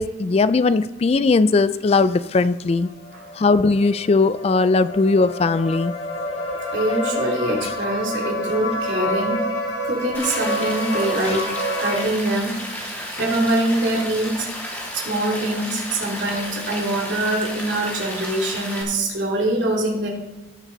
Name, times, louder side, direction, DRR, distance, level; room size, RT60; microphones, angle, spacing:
voice 1, 0.0-2.9 3.4-5.9 11.3-11.4, left 3 dB, 35° left, 15 dB, 0.3 m, -19 dB
sound 1, 2.7-12.0, equal, 90° left, 2.5 m, -28 dB
voice 2, 6.7-9.4 9.8-14.5 14.9-20.1, right 1 dB, 75° right, -2 dB, 2.9 m, -24 dB
Rain, 10.1-18.8, equal, 10° left, 2.5 m, -33 dB
18.5 x 6.1 x 4.0 m, 1.1 s
head